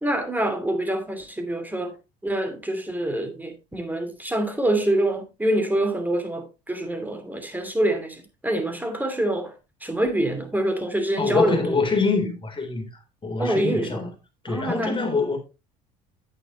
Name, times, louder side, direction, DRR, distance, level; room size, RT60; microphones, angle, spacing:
voice 1, 0.0-1.9 2.2-9.5 9.8-11.8 13.4-14.1 14.5-15.1, right 1 dB, 10° right, 2.8 m, -26 dB
voice 2, 11.2-12.9 13.2-14.1 14.4-15.4, left 4 dB, 25° left, 3.8 m, -24 dB
9.8 x 8.6 x 3.1 m
hypercardioid pair, 70°, 21 cm